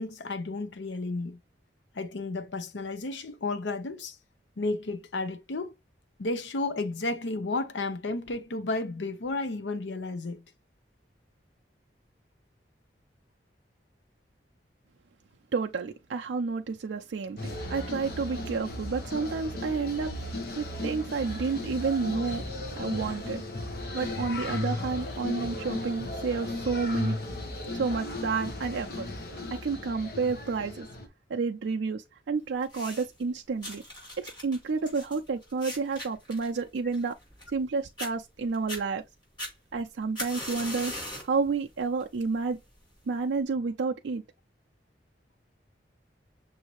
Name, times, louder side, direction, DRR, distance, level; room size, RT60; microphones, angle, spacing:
voice 1, 0.0-1.4 1.9-4.2 4.6-5.7 6.2-10.4, left 2 dB, 80° left, 0.6 m, -32 dB
voice 2, 15.5-20.1 20.5-22.4 22.8-27.2 27.7-29.1 29.5-30.9 31.3-33.8 34.2-37.2 37.5-39.0 39.7-40.9 41.2-42.6 43.1-44.2, right 4 dB, 85° right, 0.4 m, -30 dB
sound 1, 17.4-31.1, left 1 dB, 55° left, 1.0 m, -35 dB
sound 2, 32.6-33.2 33.6-37.7 38.0-38.1 38.5-38.8 39.4-41.4 41.8-42.2 42.9-43.0, left 1 dB, 25° left, 3.2 m, -39 dB
6.3 x 2.7 x 3.0 m
head